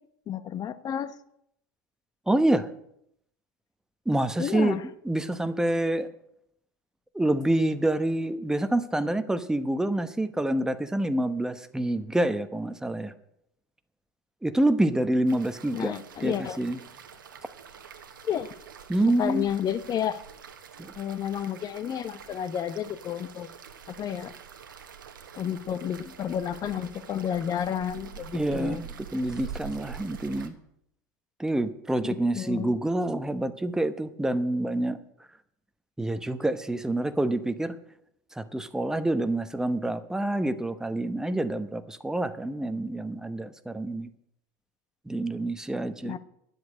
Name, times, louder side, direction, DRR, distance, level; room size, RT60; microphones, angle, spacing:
voice 1, 0.3-1.2 4.4-4.8 15.7-16.6 18.2-18.5 19.2-20.2 21.0-23.5 23.9-24.3 25.4-28.8 32.0-32.7 46.0-46.2, left 9 dB, 35° left, 13 dB, 1.0 m, -31 dB
voice 2, 2.3-2.7 4.1-4.8 5.0-6.1 7.1-13.1 14.4-15.9 16.2-16.8 18.9-19.5 20.8-20.9 28.3-30.5 31.4-35.0 36.0-37.7 38.4-44.1 45.1-46.2, right 1 dB, 5° right, 10 dB, 1.0 m, -27 dB
sound 1, 15.3-30.5, right 7 dB, 85° right, 1.3 m, -45 dB
11.0 x 7.8 x 8.5 m, 0.75 s
hypercardioid pair, 90°, 11 cm